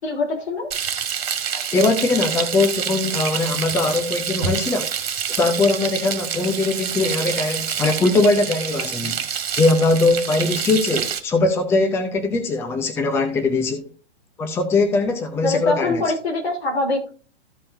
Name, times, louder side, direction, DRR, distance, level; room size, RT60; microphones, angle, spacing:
voice 1, 0.0-0.7 15.4-17.1, left 2 dB, 65° left, 3.4 m, -23 dB
Frying (food), 0.7-11.2, right 7 dB, 55° right, 1.9 m, -27 dB
voice 2, 1.5-4.9 5.3-9.2 9.5-13.9 14.4-16.0, left 3 dB, 5° left, 0.7 m, -21 dB
14.5 x 5.5 x 2.6 m
figure-of-eight pair, 120°, 34 cm